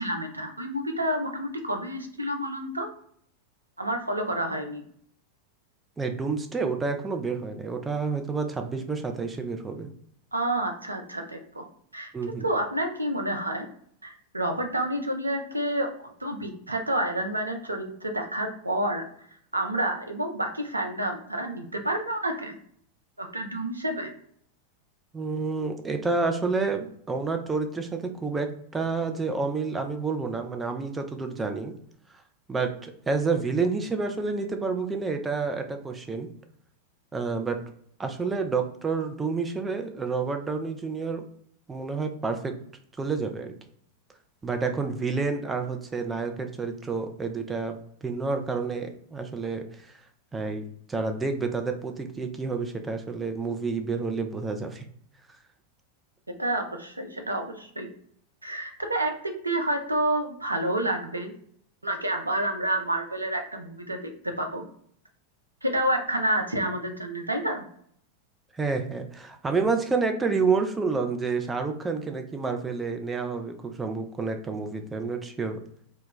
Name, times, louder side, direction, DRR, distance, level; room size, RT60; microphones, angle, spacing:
voice 1, 0.0-2.9 3.8-4.8 10.3-11.6 11.9-12.1 12.4-13.7 14.0-19.1 19.5-22.6 23.2-24.1 56.4-57.9 58.4-61.3 61.8-64.7 65.6-67.6, right 1 dB, 80° right, 3 dB, 0.5 m, -29 dB
voice 2, 6.0-9.9 12.1-12.4 25.1-31.7 32.5-36.3 37.1-37.6 38.0-41.2 41.7-42.5 43.0-43.5 44.4-49.9 50.3-54.8 68.5-75.6, right 4 dB, 15° right, 5 dB, 0.4 m, -29 dB
2.2 x 2.1 x 3.8 m, 0.64 s
figure-of-eight pair, 90°, 0 cm